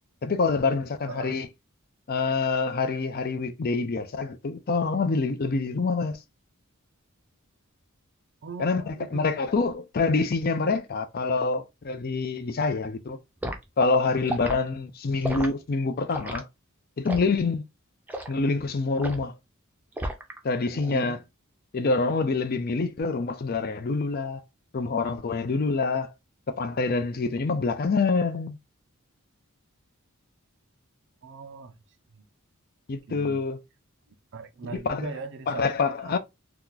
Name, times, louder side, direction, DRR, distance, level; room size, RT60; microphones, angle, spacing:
voice 1, 0.2-1.5 2.1-6.2 8.6-13.2 13.8-16.5 17.0-17.6 18.3-19.3 20.4-21.2 21.7-24.4 24.7-26.1 26.5-28.6 32.9-33.6 34.7-35.1 35.5-36.2, left 4 dB, 45° left, 0.5 m, -26 dB
voice 2, 1.1-1.4 8.4-9.3 20.7-21.2 31.2-31.8 32.1-32.3 33.1-33.4 34.3-36.2, right 4 dB, 55° right, 0.5 m, -40 dB
Liquid, 13.4-13.6 14.2-14.6 15.2-15.5 16.1-16.4 17.0-17.3 18.1-18.3 19.0-19.3 20.0-20.4 20.7-21.0, right 1 dB, 10° right, 0.5 m, -33 dB
2.9 x 2.4 x 3.7 m
head